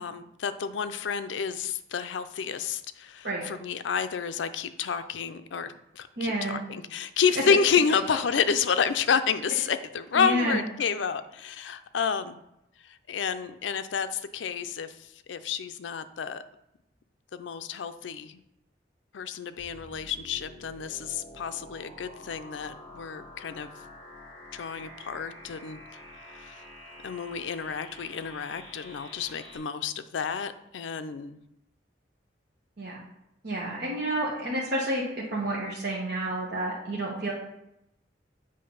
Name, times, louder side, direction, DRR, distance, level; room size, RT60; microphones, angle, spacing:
voice 1, 0.0-12.4 12.8-16.4 17.3-18.4 19.1-23.7 24.5-25.8 26.3-26.6 27.0-31.4, left 6 dB, 80° left, 11 dB, 0.5 m, -30 dB
voice 2, 6.2-6.6 10.1-10.6 32.8-33.0 33.4-35.0 35.3-37.3, right 1 dB, 65° right, -4 dB, 1.2 m, -29 dB
sound 1, 19.6-29.6, left 1 dB, 30° left, 2.2 m, -48 dB
7.7 x 3.2 x 5.4 m, 0.85 s
head